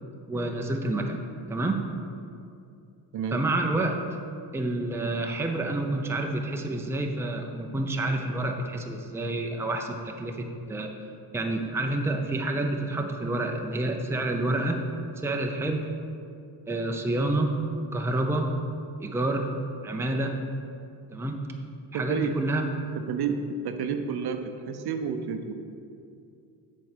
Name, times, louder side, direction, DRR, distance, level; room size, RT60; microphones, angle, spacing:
voice 1, 0.3-1.2 1.5-1.8 3.3-4.0 4.5-10.9 11.3-14.8 15.2-15.9 16.7-17.5 17.9-18.5 19.0-19.5 19.8-20.4 21.1-21.4 21.9-22.7, right 2 dB, 5° right, 3 dB, 0.6 m, -28 dB
voice 2, 21.9-22.3 23.1-24.4 24.7-25.5, right 6 dB, 60° right, 7 dB, 0.7 m, -30 dB
7.8 x 4.2 x 6.7 m, 2.5 s
cardioid pair, 115°, 43 cm